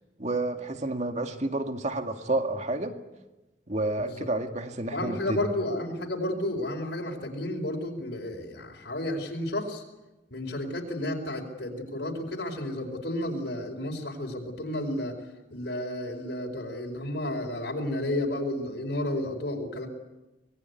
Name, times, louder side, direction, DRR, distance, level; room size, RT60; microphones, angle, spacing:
voice 1, 0.2-3.0 3.7-5.4, right 2 dB, 35° right, 6 dB, 2.1 m, -30 dB
voice 2, 4.9-9.8 10.3-15.1 15.5-19.9, left 1 dB, 65° left, 1 dB, 4.7 m, -32 dB
25.5 x 21.5 x 9.6 m, 1.1 s
head